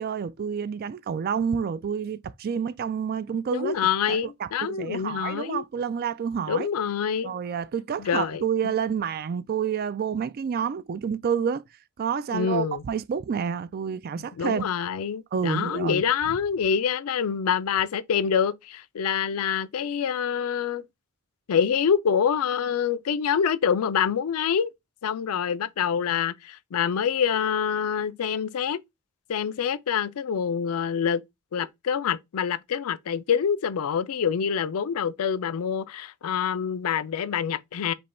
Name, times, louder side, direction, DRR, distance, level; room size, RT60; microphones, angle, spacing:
voice 1, 0.0-3.8 4.1-6.7 7.2-11.6 12.0-14.6 15.3-16.0, right 7 dB, 45° right, 0.3 m, -29 dB
voice 2, 3.5-5.6 6.5-7.3 8.0-8.4 12.3-12.8 14.2-20.8 21.5-24.7 25.0-28.8 29.3-31.2 31.5-37.9, left 7 dB, 85° left, 0.4 m, -26 dB
5.3 x 2.2 x 4.2 m
head